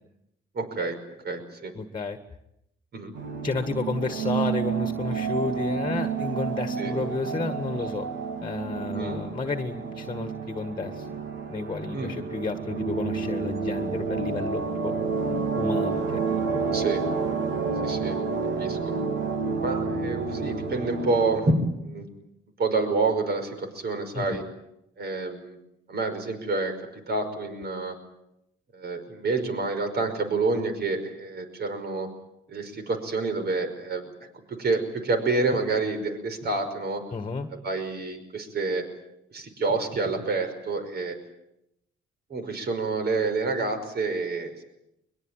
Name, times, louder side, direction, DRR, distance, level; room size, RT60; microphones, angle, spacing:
voice 1, 0.5-1.0 1.2-1.7 2.9-3.1 6.8-6.9 8.9-9.2 11.9-12.2 16.7-17.0 17.8-18.2 18.6-18.8 19.6-22.1 22.6-24.4 25.0-25.6 25.9-28.0 28.7-32.1 32.5-34.1 34.5-37.0 37.5-38.8 39.3-41.2 42.3-44.6, right 3 dB, 55° right, 7 dB, 5.4 m, -28 dB
voice 2, 1.7-2.2 3.4-8.1 8.4-11.1 11.5-14.9 15.2-16.8 24.1-24.4 37.1-37.5, left 4 dB, 25° left, 8 dB, 1.7 m, -32 dB
sound 1, 3.1-21.5, right 5 dB, 80° right, 2.9 m, -29 dB
22.5 x 22.5 x 9.0 m, 0.83 s
cardioid pair, 90°, 20 cm